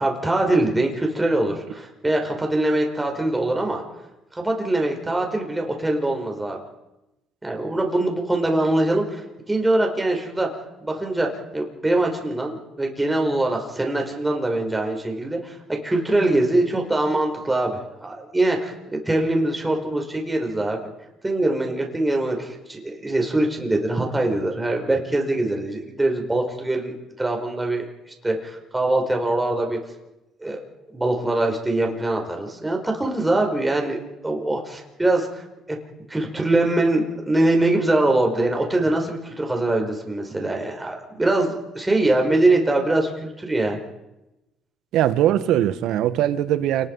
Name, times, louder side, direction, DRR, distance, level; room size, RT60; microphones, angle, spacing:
voice 1, 0.0-3.8 4.3-6.6 7.4-9.2 9.5-10.5 10.8-11.3 11.5-20.8 21.2-27.8 28.2-29.8 30.4-30.6 30.9-35.4 35.7-35.8 36.1-43.8, right 2 dB, 10° right, 5.2 m, -23 dB
voice 2, 44.9-46.9, right 12 dB, 75° right, 1.5 m, -20 dB
28.5 x 19.5 x 5.6 m
cardioid pair, 120°, 0 cm